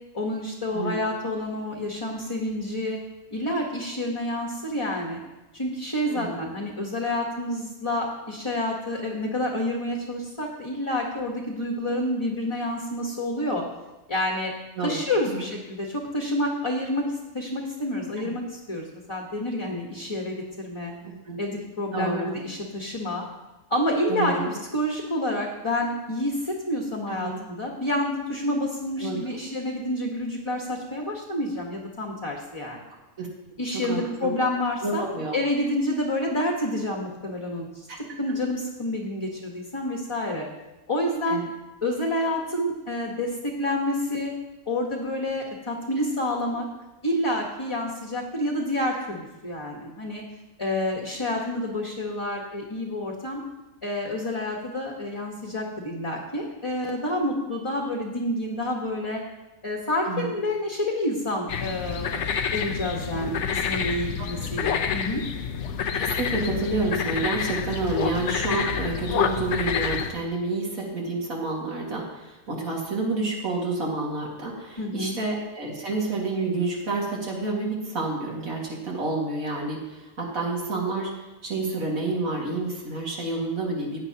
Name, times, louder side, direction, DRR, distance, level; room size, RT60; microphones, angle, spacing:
voice 1, 0.1-3.0 3.3-5.2 5.5-13.6 14.1-14.5 14.8-20.9 21.4-23.2 23.7-24.4 24.7-32.8 33.6-35.0 35.3-37.7 38.2-40.5 40.9-41.4 41.8-44.3 44.7-46.7 47.0-50.2 50.6-53.4 53.8-59.2 59.6-65.2 74.8-75.2, left 1 dB, 20° left, 0 dB, 1.3 m, -28 dB
voice 2, 21.0-21.4 21.9-22.2 24.1-24.5 27.1-27.4 29.0-29.5 33.2-33.3 33.7-34.3 34.8-35.4 37.9-38.0 38.3-38.4 41.3-41.5 60.1-60.3 64.2-64.5 65.9-81.1 81.4-84.0, right 3 dB, 70° right, -3 dB, 2.5 m, -29 dB
sound 1, 61.5-70.1, left 7 dB, 60° left, 0.9 m, -28 dB
16.0 x 9.4 x 2.9 m, 1.0 s
omnidirectional pair, 1.5 m